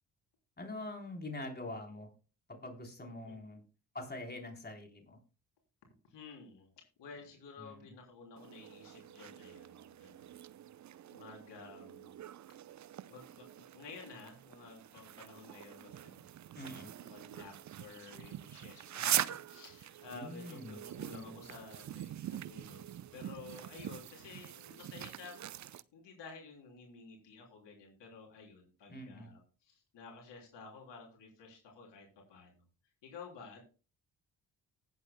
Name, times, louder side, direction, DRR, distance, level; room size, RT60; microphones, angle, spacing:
voice 1, 0.6-2.1 2.5-3.6 3.9-5.2 7.6-7.9 16.5-16.9 20.1-20.8 21.1-21.4 28.9-29.3, left 2 dB, 20° left, 2 dB, 3.8 m, -44 dB
voice 2, 3.3-3.6 6.1-6.7 7.0-10.3 11.1-12.2 13.1-16.3 17.0-25.4 25.9-32.6 33.0-33.6, left 4 dB, 60° left, 0 dB, 3.5 m, -52 dB
sound 1, 8.4-25.8, right 11 dB, 40° right, 0.6 m, -43 dB
19.0 x 8.0 x 2.2 m, 0.33 s
hypercardioid pair, 40°, 47 cm